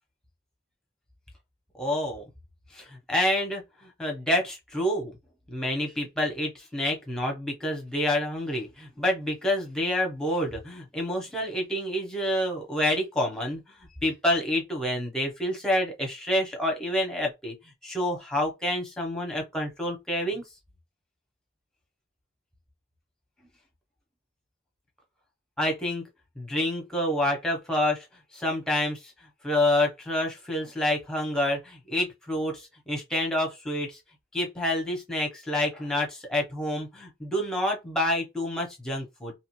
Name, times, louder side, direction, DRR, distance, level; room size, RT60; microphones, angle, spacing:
voice 1, 1.7-2.2 2.7-5.2 5.5-13.7 14.0-17.5 17.8-20.4 25.6-26.1 26.4-28.1 28.3-29.1 29.4-34.0 34.3-39.3, left 1 dB, 5° left, 0.7 m, -28 dB
2.7 x 2.4 x 2.9 m
head